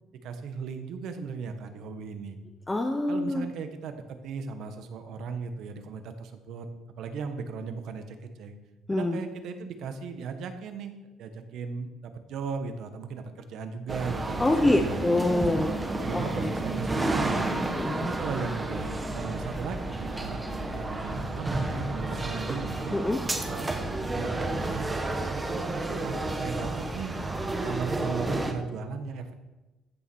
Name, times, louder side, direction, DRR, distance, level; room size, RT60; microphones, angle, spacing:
voice 1, 0.2-2.4 3.1-6.7 7.0-8.6 8.9-10.9 11.2-15.0 16.0-17.5 17.8-20.4 20.7-22.9 23.3-23.7 24.1-24.9 25.4-27.2 27.6-29.3, right 5 dB, 60° right, 8 dB, 1.4 m, -36 dB
voice 2, 2.7-3.5 8.9-9.2 14.4-15.7 16.1-16.5 17.8-18.1 22.9-23.2, left 2 dB, 10° left, 5 dB, 0.8 m, -25 dB
sound 1, 13.9-28.5, right 2 dB, 10° right, 1.2 m, -31 dB
15.0 x 7.2 x 6.3 m, 1.1 s
cardioid pair, 155°, 0 cm